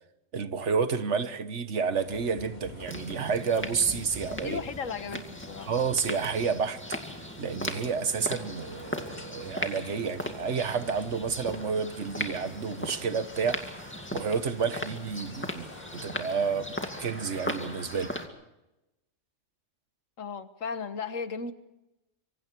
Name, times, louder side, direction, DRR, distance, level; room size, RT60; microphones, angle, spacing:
voice 1, 0.3-4.6 5.7-7.0 7.4-15.7 15.9-18.1, right 5 dB, 65° right, 1.5 m, -30 dB
sound 1, 2.0-18.0, left 1 dB, 35° left, 3.2 m, -50 dB
sound 2, 2.8-18.3, left 1 dB, 10° left, 2.3 m, -38 dB
voice 2, 4.3-5.7 20.2-21.5, left 5 dB, 85° left, 1.7 m, -35 dB
26.0 x 24.5 x 4.6 m
omnidirectional pair, 1.3 m